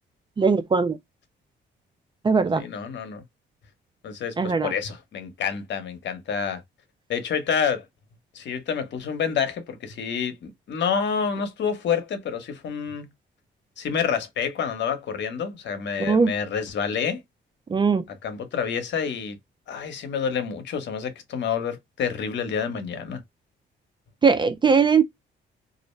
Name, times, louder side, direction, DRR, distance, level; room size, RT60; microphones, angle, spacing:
voice 1, 0.4-1.0 2.2-2.6 4.4-4.7 16.0-16.3 17.7-18.0 24.2-25.0, right 5 dB, 25° right, 0.4 m, -20 dB
voice 2, 2.5-3.2 4.0-6.6 7.1-7.9 8.3-13.1 13.8-17.2 18.1-19.4 19.7-23.2, left 7 dB, 65° left, 0.9 m, -28 dB
2.5 x 2.0 x 3.0 m
cardioid pair, 90°, 20 cm